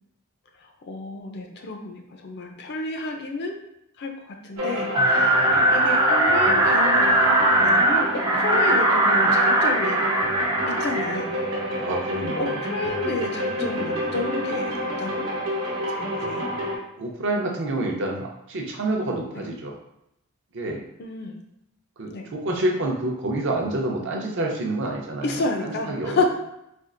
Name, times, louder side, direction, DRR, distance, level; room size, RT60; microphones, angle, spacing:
voice 1, 0.8-3.6 4.0-4.1 4.4-10.1 10.7-11.3 12.4-15.4 15.9-16.5 19.3-19.4 21.0-21.4 22.1-22.3 25.2-26.3, left 3 dB, 50° left, 3 dB, 0.4 m, -30 dB
sound 1, 4.6-16.8, equal, 70° right, 1.0 m, -29 dB
sound 2, 4.9-11.2, right 1 dB, 15° right, 0.3 m, -20 dB
voice 2, 5.4-5.7 11.8-12.6 17.0-19.7 20.5-20.8 22.0-26.2, right 2 dB, 55° right, 0 dB, 0.6 m, -28 dB
4.3 x 2.4 x 2.5 m, 0.82 s
head